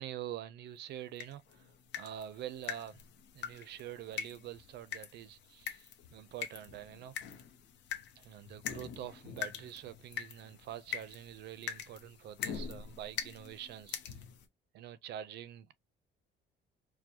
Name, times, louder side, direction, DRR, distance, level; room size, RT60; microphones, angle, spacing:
voice 1, 0.0-3.0 3.3-7.1 8.2-14.2 14.7-15.7, right 11 dB, 70° right, 0.5 m, -46 dB
sound 1, 1.2-14.5, left 8 dB, 80° left, 0.8 m, -44 dB
4.6 x 2.1 x 2.7 m
cardioid pair, 145°, 18 cm